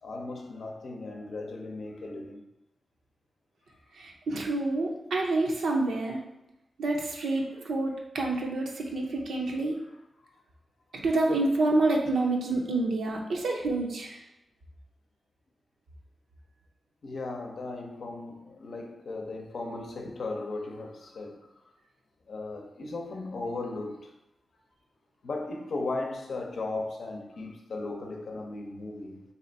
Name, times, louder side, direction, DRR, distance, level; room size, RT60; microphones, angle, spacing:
voice 1, 0.0-2.5 9.8-10.0 17.0-21.6 22.3-24.1 25.2-29.2, left 2 dB, 70° left, 0.6 m, -37 dB
voice 2, 4.0-6.2 6.8-9.8 10.9-14.2, right 2 dB, 85° right, 0.7 m, -28 dB
3.3 x 2.8 x 3.9 m
cardioid pair, 65°, 0 cm